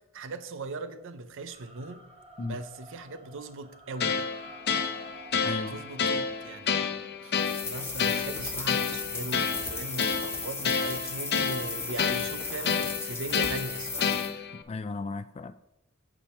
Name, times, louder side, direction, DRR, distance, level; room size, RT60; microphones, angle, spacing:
voice 1, 0.1-2.0 2.4-4.3 5.7-6.7 7.2-14.1, right 3 dB, 65° right, 0.7 m, -39 dB
sound 1, 1.5-6.5, equal, 30° right, 2.4 m, -52 dB
sound 2, 4.0-14.6, left 6 dB, 50° left, 0.8 m, -30 dB
voice 2, 5.4-5.8 14.1-15.5, left 3 dB, 30° left, 0.3 m, -36 dB
sound 3, 7.3-14.3, left 4 dB, 10° left, 1.1 m, -36 dB
8.7 x 8.4 x 4.3 m
head